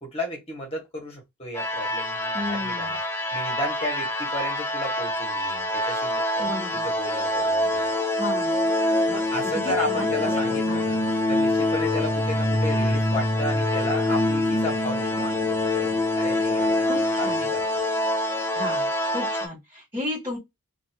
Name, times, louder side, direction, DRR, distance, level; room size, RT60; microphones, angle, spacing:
voice 1, 0.0-3.0 3.3-7.8 9.1-15.4 15.7-17.6, left 1 dB, 25° left, 1.4 m, -34 dB
sound 1, 1.5-19.5, left 1 dB, 10° left, 0.4 m, -25 dB
voice 2, 2.3-3.0 6.4-6.8 8.1-8.7 9.5-10.8 16.8-17.5 18.5-20.4, left 2 dB, 20° right, 1.6 m, -34 dB
2.9 x 2.5 x 2.8 m
head